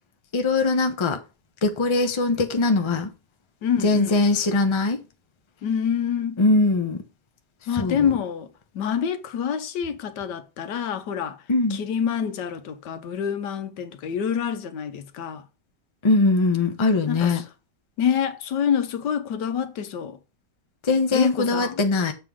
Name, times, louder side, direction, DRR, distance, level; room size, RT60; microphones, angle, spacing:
voice 1, 0.3-1.2 1.6-3.1 3.8-5.0 6.4-7.0 7.7-8.1 11.5-11.8 16.0-17.4 20.8-22.1, left 3 dB, 25° left, 0.7 m, -21 dB
voice 2, 3.6-4.2 5.6-6.4 7.7-11.4 11.7-15.4 17.1-17.4 18.0-20.2 21.1-21.8, left 8 dB, 85° left, 1.5 m, -27 dB
7.5 x 3.7 x 6.2 m
omnidirectional pair, 1.8 m